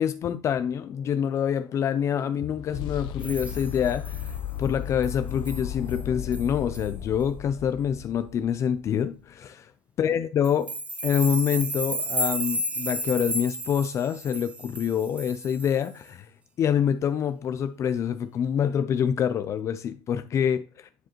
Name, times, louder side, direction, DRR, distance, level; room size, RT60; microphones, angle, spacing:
voice 1, 0.0-9.7 10.0-10.7 11.0-16.3 16.6-20.9, left 8 dB, 35° left, 0.4 m, -26 dB
sound 1, 0.6-8.6, left 10 dB, 70° left, 0.8 m, -36 dB
sound 2, 3.2-4.4 5.0-5.2 5.4-5.6 5.9-6.0 6.3-6.5 6.7-6.9 10.4-15.9, right 1 dB, 15° right, 0.6 m, -33 dB
10.0 x 4.8 x 3.0 m
cardioid pair, 155°, 8 cm